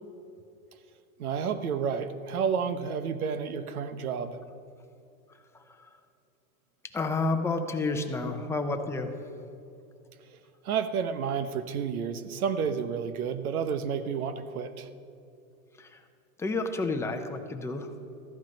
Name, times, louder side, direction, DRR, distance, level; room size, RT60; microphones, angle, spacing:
voice 1, 1.2-4.4 10.6-14.9, right 6 dB, 85° right, 11 dB, 1.1 m, -30 dB
voice 2, 6.9-9.1 15.8-16.0 16.4-17.9, left 3 dB, 5° left, 5 dB, 0.6 m, -30 dB
14.5 x 10.5 x 5.3 m, 2.7 s
supercardioid pair, 140°, 42 cm